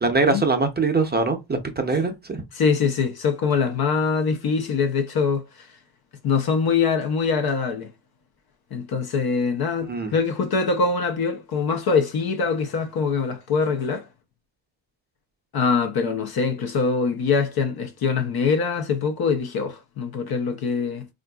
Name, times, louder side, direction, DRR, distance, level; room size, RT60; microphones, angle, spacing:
voice 1, 0.0-2.4 9.8-10.1, right 3 dB, 25° right, 0.5 m, -22 dB
voice 2, 2.5-5.8 6.2-7.9 8.7-14.1 15.5-21.1, left 5 dB, 55° left, 0.5 m, -23 dB
3.6 x 2.5 x 2.2 m
cardioid pair, 115°, 45 cm